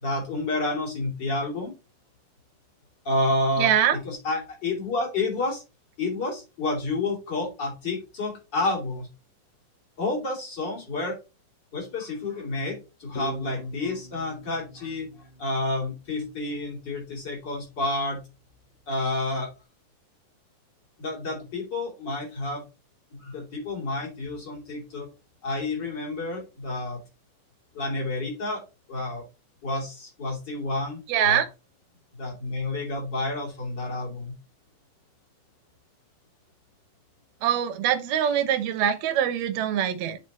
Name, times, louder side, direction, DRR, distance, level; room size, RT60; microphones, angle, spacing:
voice 1, 0.0-1.7 3.0-5.6 6.0-9.1 10.0-11.2 11.7-18.2 18.9-19.5 21.0-22.6 23.1-25.1 25.4-27.0 27.7-28.6 28.9-29.2 29.6-31.4 32.2-34.3, left 2 dB, 30° left, 3.2 m, -30 dB
voice 2, 3.6-4.0 31.1-31.5 37.4-40.2, right 9 dB, 75° right, 1.7 m, -23 dB
sound 1, 13.2-16.6, equal, 55° left, 3.0 m, -44 dB
7.1 x 4.7 x 4.1 m
omnidirectional pair, 4.1 m